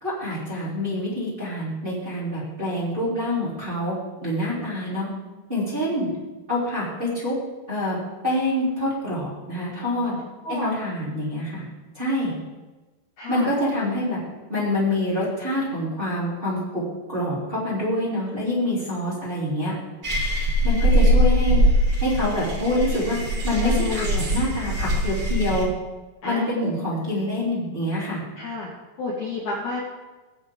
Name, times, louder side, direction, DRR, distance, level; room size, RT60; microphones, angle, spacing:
voice 1, 0.0-3.9 4.2-5.1 5.5-6.1 6.5-7.3 7.7-8.0 8.2-10.2 10.6-11.6 11.9-12.3 13.3-14.2 14.5-16.8 17.1-19.7 20.6-21.6 22.0-23.2 23.4-24.0 24.3-25.7 26.2-28.2, left 1 dB, 15° right, -8 dB, 2.9 m, -26 dB
voice 2, 10.0-10.7 13.2-13.5 23.6-24.2 26.2-26.5 28.4-28.7 29.0-29.8, left 3 dB, 60° left, -4 dB, 2.3 m, -30 dB
sound 1, 20.0-25.6, equal, 60° right, 1.0 m, -21 dB
18.5 x 7.5 x 3.7 m, 1.2 s
omnidirectional pair, 4.9 m